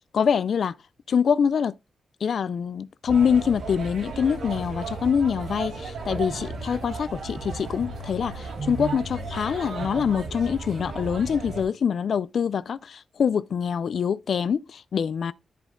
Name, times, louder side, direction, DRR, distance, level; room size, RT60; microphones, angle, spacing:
voice 1, 0.1-0.7 1.1-1.7 2.2-15.3, left 7 dB, 65° left, 0.4 m, -25 dB
sound 1, 3.1-11.6, right 3 dB, 70° right, 3.6 m, -34 dB
11.0 x 4.2 x 3.8 m
cardioid pair, 100°, 0 cm